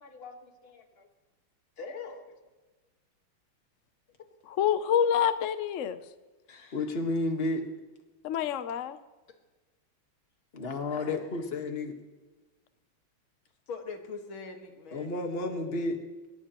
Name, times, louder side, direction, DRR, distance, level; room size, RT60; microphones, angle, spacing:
voice 1, 0.0-0.4 0.6-0.8 1.8-2.2 6.7-7.6 10.5-11.9 14.9-16.0, left 2 dB, 30° left, 4 dB, 1.6 m, -32 dB
voice 2, 4.4-6.0 8.2-9.0, left 8 dB, 65° left, 11 dB, 0.7 m, -27 dB
voice 3, 6.5-6.9 10.9-11.4 13.7-15.1, left 4 dB, 80° left, 4 dB, 2.5 m, -43 dB
22.0 x 20.0 x 3.0 m, 1.2 s
omnidirectional pair, 2.2 m